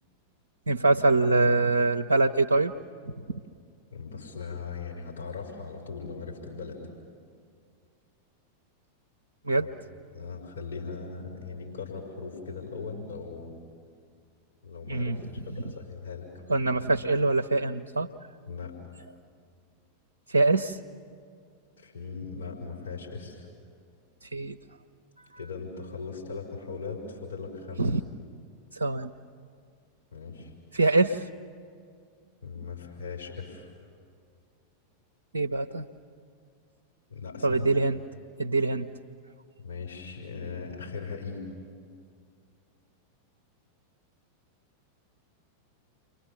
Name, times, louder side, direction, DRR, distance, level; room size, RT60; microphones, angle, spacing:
voice 1, 0.7-2.7 3.0-3.4 9.4-9.7 14.9-15.2 16.5-18.1 20.3-20.8 24.2-24.6 27.8-28.0 28.7-29.1 30.7-31.3 35.3-35.9 37.4-38.0 38.4-38.9, right 3 dB, 75° right, 5 dB, 0.6 m, -24 dB
voice 2, 3.9-6.8 9.6-9.7 10.1-13.5 14.6-16.3 18.5-18.7 21.8-23.5 25.4-27.8 30.1-30.5 32.4-33.7 37.1-37.7 39.6-41.4, left 5 dB, 75° left, -3 dB, 4.8 m, -39 dB
30.0 x 24.0 x 7.2 m, 2.2 s
figure-of-eight pair, 90°, 0 cm